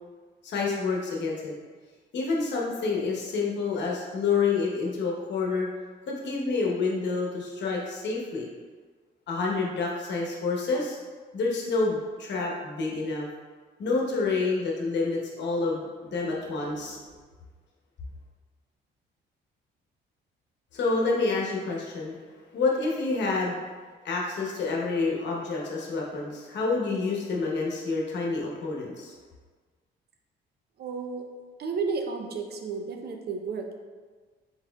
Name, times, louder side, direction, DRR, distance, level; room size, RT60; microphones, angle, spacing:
voice 1, 0.4-1.5 2.1-5.7 6.1-8.5 9.3-11.0 11.3-13.3 13.8-17.0 20.7-22.2 22.5-23.6 24.0-29.1, left 4 dB, 65° left, -2 dB, 1.0 m, -28 dB
voice 2, 30.8-31.3 31.6-33.7, right 4 dB, 55° right, 3 dB, 0.5 m, -32 dB
4.2 x 4.2 x 2.3 m, 1.4 s
cardioid pair, 90°, 20 cm